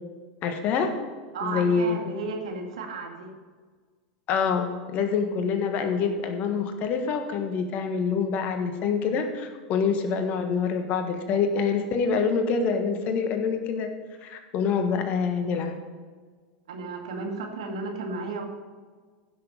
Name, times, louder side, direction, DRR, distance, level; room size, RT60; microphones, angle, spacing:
voice 1, 0.4-0.9 1.4-2.1 4.3-13.9 14.2-15.8, left 5 dB, 45° left, 6 dB, 1.5 m, -26 dB
voice 2, 1.3-3.3 16.7-18.4, right 3 dB, 70° right, 2 dB, 2.1 m, -33 dB
15.5 x 6.5 x 5.4 m, 1.5 s
figure-of-eight pair, 85°, 4 cm